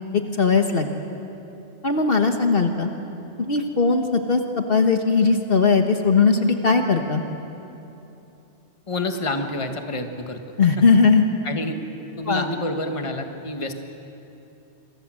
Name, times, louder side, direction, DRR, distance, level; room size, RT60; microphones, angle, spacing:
voice 1, 0.1-0.9 1.8-2.9 3.4-7.2 10.6-11.2 12.3-12.5, left 4 dB, 55° left, 5 dB, 1.5 m, -19 dB
voice 2, 8.9-10.4 11.4-11.8 12.2-13.7, left 2 dB, 25° left, 5 dB, 1.5 m, -28 dB
27.5 x 23.5 x 7.6 m, 2.9 s
omnidirectional pair, 1.2 m